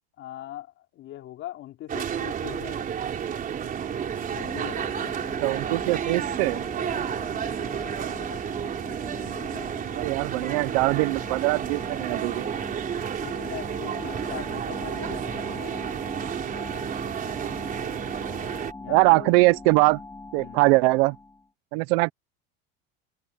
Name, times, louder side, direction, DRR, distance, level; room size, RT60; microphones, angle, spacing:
voice 1, 0.2-0.7 0.9-2.9 4.3-5.2 6.8-7.1 9.3-9.9 13.2-15.8 18.2-18.5 18.8-19.3 20.4-20.7, left 13 dB, 40° left, 5.2 m, -41 dB
sound 1, 1.9-18.7, right 8 dB, 25° right, 4.2 m, -31 dB
sound 2, 2.6-21.5, left 3 dB, 10° left, 6.6 m, -42 dB
voice 2, 5.4-6.6 9.9-12.5 18.9-20.0 20.3-21.2 21.7-22.1, right 23 dB, 70° right, 1.0 m, -22 dB
open air
cardioid pair, 160°, 31 cm